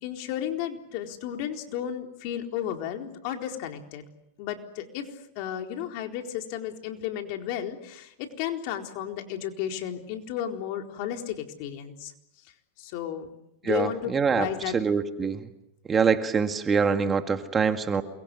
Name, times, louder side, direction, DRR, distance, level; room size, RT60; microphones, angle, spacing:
voice 1, 0.0-4.0 4.4-5.1 5.3-12.1 12.8-13.3 13.6-14.8, left 10 dB, 55° left, 4 dB, 4.2 m, -33 dB
voice 2, 13.7-14.5 14.7-15.4 15.9-18.0, right 6 dB, 20° right, 7 dB, 1.9 m, -24 dB
28.5 x 23.5 x 8.0 m, 0.81 s
supercardioid pair, 130°, 0 cm